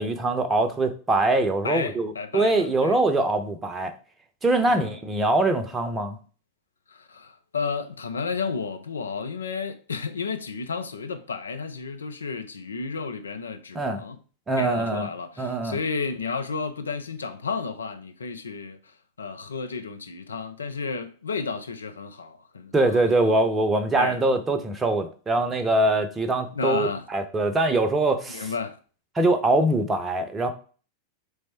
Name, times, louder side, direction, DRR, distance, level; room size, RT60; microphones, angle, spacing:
voice 1, 0.0-3.9 4.4-6.2 13.7-14.0 14.5-15.1 15.4-15.8 22.7-28.5 29.2-30.5, right 2 dB, 15° right, 0.7 m, -23 dB
voice 2, 1.6-3.0 4.7-5.0 6.9-14.2 14.6-18.8 19.2-23.4 24.0-24.2 26.5-27.1 28.3-28.8, left 5 dB, 75° left, 0.5 m, -32 dB
3.4 x 3.2 x 4.3 m
figure-of-eight pair, 90°, 0 cm